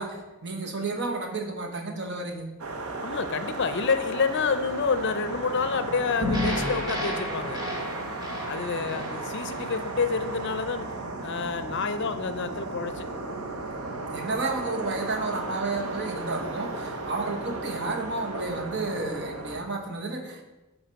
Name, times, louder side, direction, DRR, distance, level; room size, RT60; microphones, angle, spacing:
voice 1, 0.0-2.5 8.7-8.9 14.1-20.4, right 3 dB, 50° right, 4 dB, 1.1 m, -32 dB
sound 1, 2.6-19.6, right 2 dB, 75° right, 0.8 m, -35 dB
voice 2, 3.0-7.6 8.4-10.9 11.2-13.0, left 5 dB, 55° left, 10 dB, 0.5 m, -28 dB
sound 2, 6.2-10.5, left 1 dB, 20° right, 1.8 m, -32 dB
8.7 x 4.3 x 5.2 m, 1.1 s
head